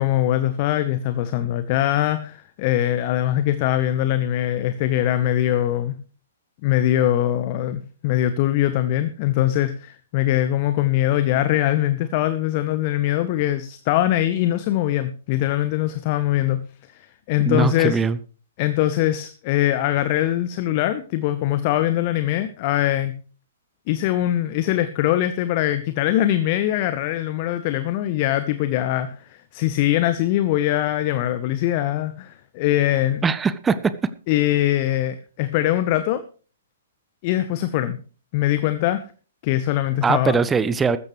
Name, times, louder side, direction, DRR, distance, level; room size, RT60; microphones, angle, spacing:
voice 1, 0.0-5.9 6.6-16.6 16.9-18.0 18.6-23.1 23.9-33.2 34.3-36.2 37.2-38.0 38.3-39.0 39.4-40.4, left 13 dB, 35° left, 12 dB, 0.9 m, -22 dB
voice 2, 17.5-18.2 33.2-33.9 40.0-41.0, right 5 dB, 10° right, 15 dB, 0.7 m, -21 dB
15.5 x 13.5 x 3.2 m, 0.38 s
figure-of-eight pair, 115°, 0 cm